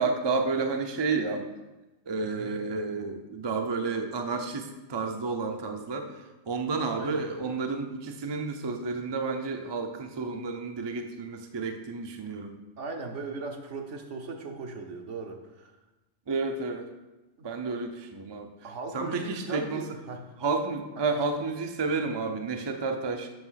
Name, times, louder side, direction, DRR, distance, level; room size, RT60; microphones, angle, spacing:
voice 1, 0.0-1.4 2.1-6.1 6.5-12.5 16.3-16.9 17.4-18.5 18.9-19.8 20.4-23.3, right 4 dB, 30° right, 5 dB, 0.5 m, -31 dB
voice 2, 2.2-2.6 6.9-7.2 12.8-15.7 17.4-17.5 18.6-20.3 21.0-21.1, right 3 dB, 75° right, 4 dB, 1.3 m, -38 dB
7.8 x 5.6 x 5.7 m, 1.1 s
omnidirectional pair, 1.3 m